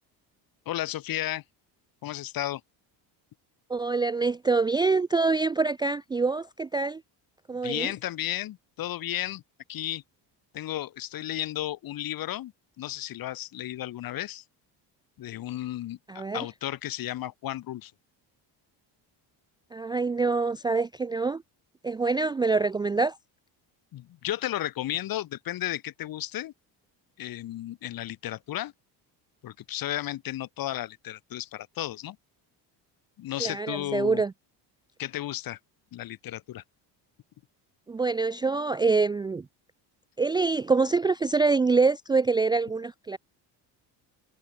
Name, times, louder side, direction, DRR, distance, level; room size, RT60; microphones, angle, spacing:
voice 1, 0.7-1.4 2.0-2.6 7.6-9.4 9.7-10.0 10.5-14.4 15.2-17.9 23.9-26.5 27.2-28.7 29.4-32.2 33.2-34.2 35.0-35.6 35.9-36.6, left 13 dB, 55° left, 5.4 m, -33 dB
voice 2, 3.7-7.0 7.5-7.9 16.1-16.5 19.7-21.4 21.8-23.2 33.4-34.3 37.9-39.5 40.2-43.2, right 4 dB, 10° right, 0.4 m, -25 dB
cardioid pair, 160°, 42 cm